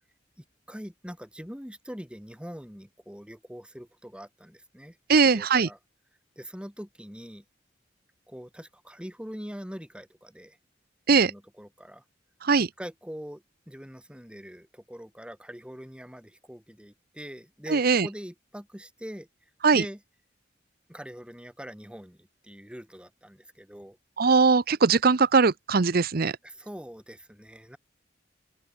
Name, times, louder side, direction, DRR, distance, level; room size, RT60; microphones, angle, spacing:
voice 1, 0.4-5.8 6.4-7.4 8.3-10.6 11.1-12.0 12.8-19.3 19.7-20.0 20.9-24.0 26.4-27.8, equal, 5° right, 5.3 m, -43 dB
voice 2, 5.1-5.7 11.1-11.3 12.4-12.7 17.7-18.1 19.6-19.8 24.2-26.3, right 4 dB, 55° right, 0.8 m, -20 dB
open air
head